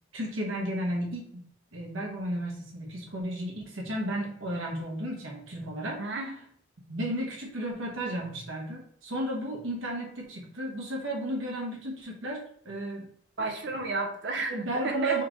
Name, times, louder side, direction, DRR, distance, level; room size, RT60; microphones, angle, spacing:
voice 1, 0.1-1.4 1.7-6.0 6.9-12.4 12.6-13.1 14.5-15.2, right 1 dB, 85° right, -1 dB, 1.4 m, -33 dB
voice 2, 6.0-6.4 13.4-14.5 14.8-15.2, right 3 dB, 60° right, 3 dB, 0.8 m, -31 dB
4.4 x 3.1 x 3.8 m, 0.62 s
head